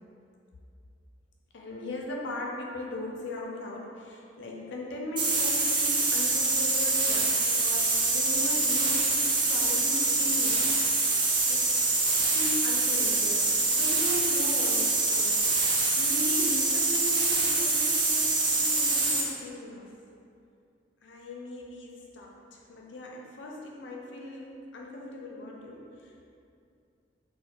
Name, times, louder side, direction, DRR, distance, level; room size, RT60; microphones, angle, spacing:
voice 1, 1.5-10.7 11.0-11.7 12.1-15.4 16.0-19.8 21.0-26.3, left 1 dB, 65° left, -1 dB, 0.5 m, -38 dB
sound 1, 5.2-19.3, right 3 dB, 25° right, 0.3 m, -25 dB
4.2 x 2.1 x 2.2 m, 2.5 s
head